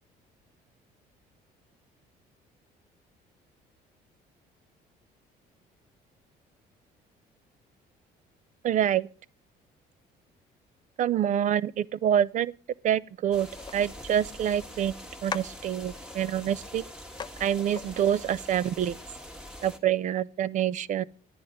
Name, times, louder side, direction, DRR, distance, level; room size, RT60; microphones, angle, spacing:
voice 1, 8.6-9.1 11.0-12.5 12.8-13.5 13.7-16.8 17.4-19.0 19.6-21.0, right 10 dB, 45° right, 0.5 m, -26 dB
sound 1, 13.3-19.8, left 1 dB, 5° right, 1.5 m, -44 dB
sound 2, 13.5-13.8 14.7-14.8 15.3-16.3 16.7-16.8 17.2-17.3 17.6-17.9, left 6 dB, 25° left, 0.5 m, -39 dB
10.5 x 10.0 x 5.2 m
cardioid pair, 110°, 17 cm